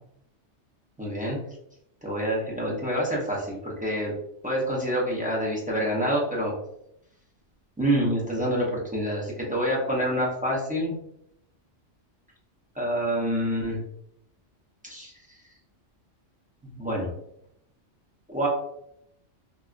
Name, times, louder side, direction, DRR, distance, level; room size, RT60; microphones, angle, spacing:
voice 1, 1.0-1.4 2.0-4.1 4.4-6.5 7.8-10.9 12.7-13.8 14.8-15.1 16.6-17.1 18.3-18.5, equal, 10° right, -4 dB, 0.6 m, -27 dB
3.3 x 2.5 x 2.4 m, 0.76 s
omnidirectional pair, 1.3 m